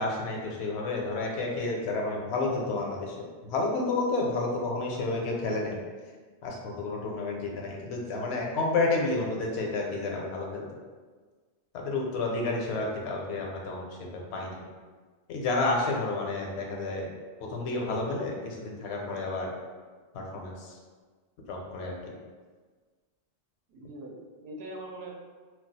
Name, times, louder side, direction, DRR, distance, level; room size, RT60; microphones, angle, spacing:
voice 1, 0.0-3.2 3.4-5.8 6.4-10.6 11.7-14.7 15.3-17.1 17.4-19.5 20.1-20.8 21.5-22.1, left 3 dB, 75° left, -1 dB, 0.9 m, -30 dB
voice 2, 23.7-25.1, right 1 dB, 75° right, -1 dB, 0.8 m, -42 dB
2.3 x 2.3 x 3.9 m, 1.4 s
omnidirectional pair, 1.1 m